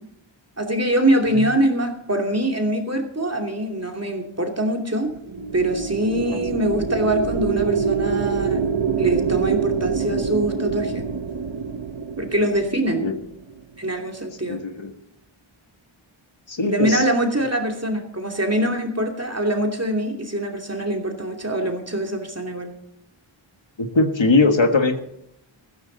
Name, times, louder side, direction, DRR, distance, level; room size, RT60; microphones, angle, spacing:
voice 1, 0.6-5.1 5.5-8.7 8.9-11.0 12.2-13.1 13.8-14.6 16.6-22.7, right 1 dB, 30° right, 2 dB, 2.8 m, -23 dB
sound 1, 5.1-13.6, right 6 dB, 60° right, 1.0 m, -26 dB
voice 2, 14.4-14.9 16.5-17.0 23.8-25.0, left 3 dB, 65° left, 6 dB, 1.7 m, -20 dB
14.5 x 14.5 x 4.0 m, 0.76 s
wide cardioid pair, 55°, 49 cm